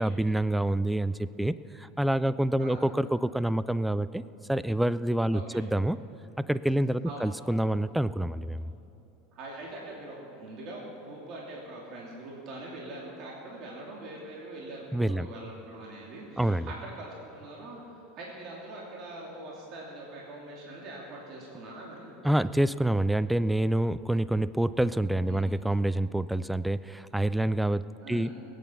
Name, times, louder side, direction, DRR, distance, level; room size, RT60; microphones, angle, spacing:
voice 1, 0.0-4.2 4.5-6.0 6.5-8.7 14.9-15.3 16.4-16.7 22.2-28.3, right 1 dB, 5° right, 16 dB, 0.3 m, -27 dB
voice 2, 5.3-5.7 7.0-7.3 9.3-17.8 18.1-22.1 25.3-25.4 28.0-28.3, right 2 dB, 45° right, -3 dB, 2.9 m, -43 dB
20.5 x 9.4 x 5.7 m, 3.0 s
supercardioid pair, 140°, 0 cm